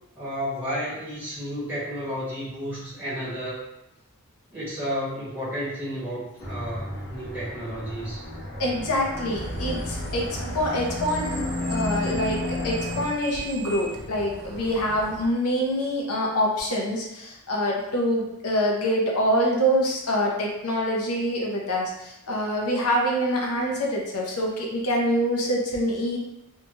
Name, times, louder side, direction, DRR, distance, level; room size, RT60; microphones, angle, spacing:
voice 1, 0.1-3.6 4.5-8.2, equal, 10° right, -11 dB, 1.0 m, -32 dB
sound 1, 6.4-13.0, left 2 dB, 45° left, 0.9 m, -33 dB
voice 2, 8.6-11.4 11.7-26.2, equal, 75° left, -1 dB, 0.7 m, -25 dB
sound 2, 9.3-15.3, right 1 dB, 70° right, 0.6 m, -36 dB
2.8 x 2.3 x 2.8 m, 0.87 s
head